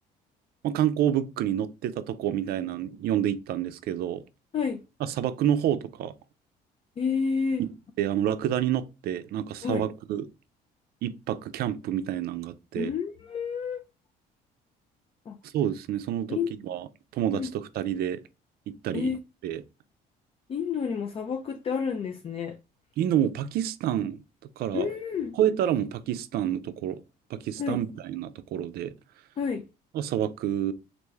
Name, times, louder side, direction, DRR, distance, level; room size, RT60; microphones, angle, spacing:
voice 1, 0.6-4.2 5.0-6.1 7.6-7.7 8.0-10.3 11.0-12.9 15.4-18.2 18.7-19.2 19.4-19.6 23.0-24.2 24.6-24.9 25.3-27.0 27.3-28.9 29.9-30.7, right 10 dB, 65° right, 0.4 m, -28 dB
voice 2, 7.0-7.6 9.6-9.8 12.8-13.8 15.3-15.4 16.3-16.5 17.3-17.5 18.9-19.2 20.5-22.6 24.7-25.3 27.6-27.8 29.4-29.6, left 6 dB, 35° left, 0.4 m, -29 dB
3.4 x 2.5 x 3.2 m
cardioid pair, 110°, 17 cm